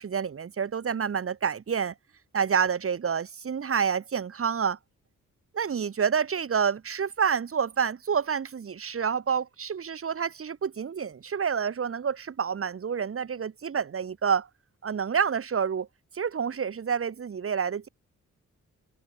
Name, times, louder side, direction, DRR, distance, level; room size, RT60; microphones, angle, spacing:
voice 1, 0.0-1.9 2.3-4.8 5.5-14.5 14.8-15.9 16.1-17.9, right 7 dB, 50° right, 2.8 m, -28 dB
wide cardioid pair, 125°, 30 cm